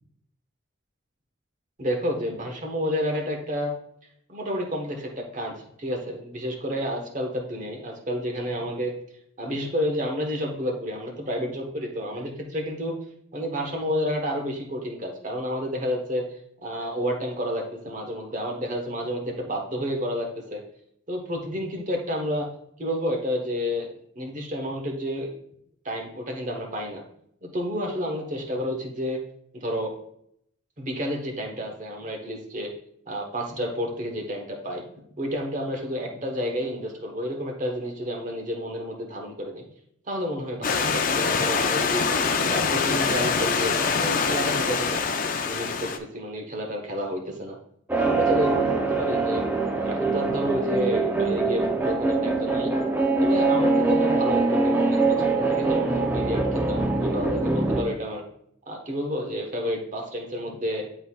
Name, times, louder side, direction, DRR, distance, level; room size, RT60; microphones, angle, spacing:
voice 1, 1.8-3.7 4.3-8.9 9.4-12.9 13.3-16.3 16.6-20.6 21.1-22.5 22.8-25.3 25.8-27.0 27.4-29.2 29.6-29.9 30.8-32.7 33.1-34.8 35.2-39.7 40.1-42.1 42.5-45.0 45.4-47.6 47.9-49.5 49.8-52.7 53.2-58.2 58.7-60.9, equal, 40° right, 1 dB, 1.1 m, -30 dB
Stream / Liquid, 40.6-46.0, left 5 dB, 45° left, 0.5 m, -24 dB
sound 1, 47.9-57.8, right 3 dB, 10° right, 0.6 m, -23 dB
10.0 x 4.0 x 2.3 m, 0.71 s
head